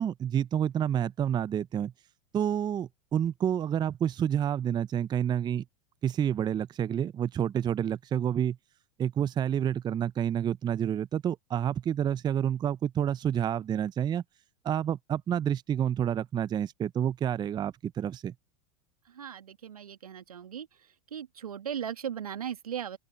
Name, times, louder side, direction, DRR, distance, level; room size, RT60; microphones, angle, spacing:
voice 1, 0.0-1.9 2.3-5.6 6.0-8.6 9.0-14.2 14.6-18.3, right 9 dB, 20° right, 0.6 m, -29 dB
voice 2, 19.1-20.7 21.1-23.0, right 9 dB, 75° right, 1.8 m, -37 dB
open air
figure-of-eight pair, 85°, 19 cm